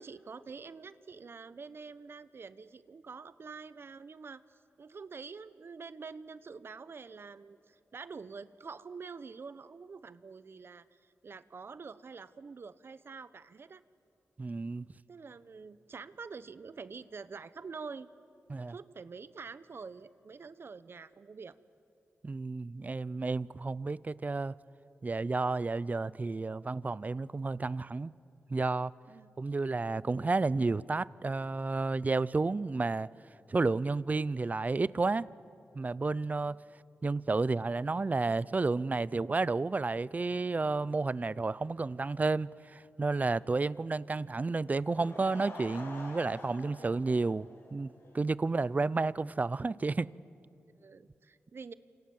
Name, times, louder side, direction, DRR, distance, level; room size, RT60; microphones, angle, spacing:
voice 1, 0.0-4.4 4.8-13.8 15.1-18.1 18.5-21.6 29.1-29.3 36.4-36.6 46.8-46.9 50.8-51.7, right 5 dB, 55° right, 0.9 m, -46 dB
voice 2, 14.4-14.9 18.5-18.7 22.2-24.5 25.0-28.1 28.5-28.9 29.4-33.1 33.5-35.3 35.7-36.6 37.0-47.9 48.1-50.1, right 3 dB, 35° right, 0.5 m, -31 dB
Laughter / Crowd, 44.6-48.1 48.4-48.5 49.1-49.2 49.3-49.4, left 2 dB, 85° left, 6.3 m, -47 dB
29.5 x 26.5 x 7.2 m
cardioid pair, 65°, 5 cm